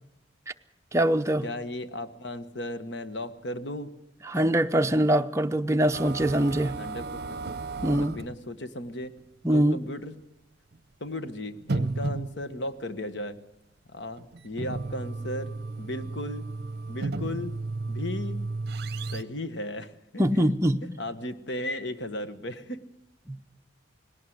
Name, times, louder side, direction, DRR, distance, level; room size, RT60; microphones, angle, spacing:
voice 1, 0.9-1.4 4.3-6.7 7.8-8.2 9.4-9.8 20.2-20.8 23.3-23.4, right 1 dB, 15° right, 7 dB, 0.7 m, -23 dB
voice 2, 1.4-3.9 6.8-7.1 7.7-9.1 9.5-10.1 11.0-13.4 13.9-16.5 16.9-17.5 17.9-18.4 19.1-20.5 21.0-22.8, left 1 dB, 70° left, 11 dB, 1.3 m, -36 dB
sound 1, 5.9-8.4 9.2-9.3 9.7-9.8 10.7-10.8 11.6-12.7 14.2-19.2, right 3 dB, 55° right, 0.7 m, -33 dB
19.0 x 17.5 x 7.9 m, 0.84 s
head